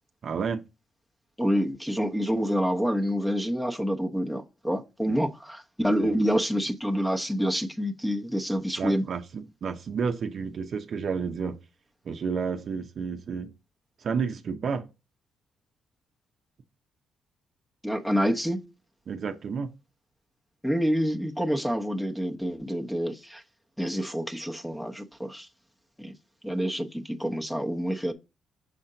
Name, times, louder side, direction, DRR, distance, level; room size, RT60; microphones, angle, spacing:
voice 1, 0.2-0.6 5.1-5.2 6.0-6.2 8.8-11.6 12.0-13.5 14.0-14.9 19.1-19.7, right 5 dB, 55° right, 0.7 m, -31 dB
voice 2, 1.4-9.0 17.8-18.7 20.6-23.4 23.8-25.5 26.0-26.1 26.4-28.1, equal, 5° left, 0.8 m, -27 dB
6.6 x 4.3 x 3.9 m
cardioid pair, 90°, 0 cm